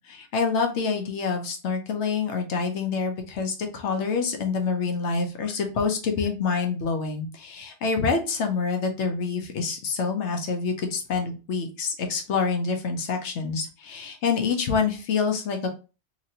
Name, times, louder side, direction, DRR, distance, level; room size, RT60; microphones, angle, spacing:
voice 1, 0.1-15.7, left 5 dB, 80° left, 5 dB, 1.0 m, -27 dB
3.0 x 2.8 x 2.7 m, 0.32 s
omnidirectional pair, 1.2 m